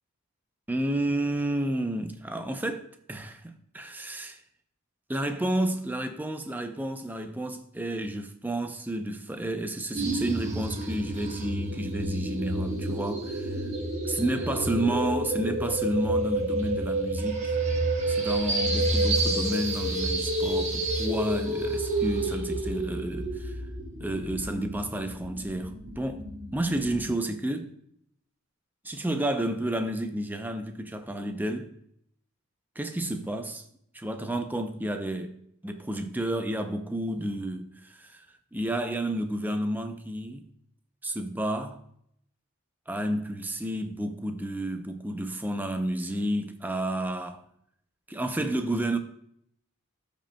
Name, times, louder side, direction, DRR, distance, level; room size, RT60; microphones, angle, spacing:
voice 1, 0.7-4.4 5.1-13.7 14.0-17.6 18.1-23.6 24.0-26.2 26.5-27.8 28.8-31.7 32.8-33.6 33.9-35.3 35.6-38.3 38.5-40.5 41.0-41.8 42.9-47.4 48.1-49.0, right 1 dB, 10° right, 0.5 m, -31 dB
sound 1, 9.9-27.1, right 1 dB, 30° right, 1.3 m, -29 dB
14.0 x 5.2 x 2.2 m
head